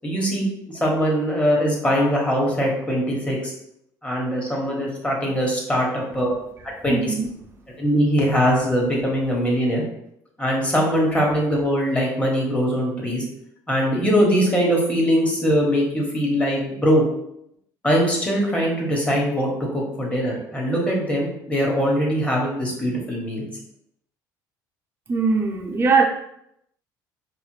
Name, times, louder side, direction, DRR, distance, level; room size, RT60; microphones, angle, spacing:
voice 1, 0.0-0.5 0.8-3.5 4.0-6.3 6.8-7.1 7.8-9.8 10.4-13.2 13.7-17.0 17.8-23.5, equal, 15° left, -2 dB, 1.4 m, -21 dB
voice 2, 6.9-7.3 25.1-26.0, right 4 dB, 25° right, 0 dB, 0.6 m, -20 dB
4.7 x 2.1 x 3.2 m, 0.77 s
supercardioid pair, 90°, 8 cm